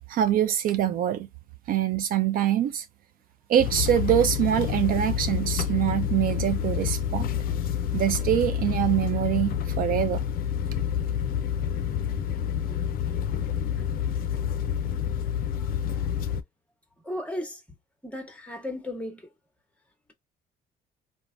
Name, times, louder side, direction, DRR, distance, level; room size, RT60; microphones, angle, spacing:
voice 1, 0.1-1.3 1.7-2.9 3.5-7.3 7.9-10.2, right 11 dB, 60° right, 0.4 m, -24 dB
sound 1, 3.6-16.4, left 9 dB, 60° left, 0.4 m, -28 dB
voice 2, 17.0-17.6 18.0-19.2, left 1 dB, 10° left, 1.0 m, -35 dB
3.1 x 2.1 x 2.5 m
cardioid pair, 110°, 17 cm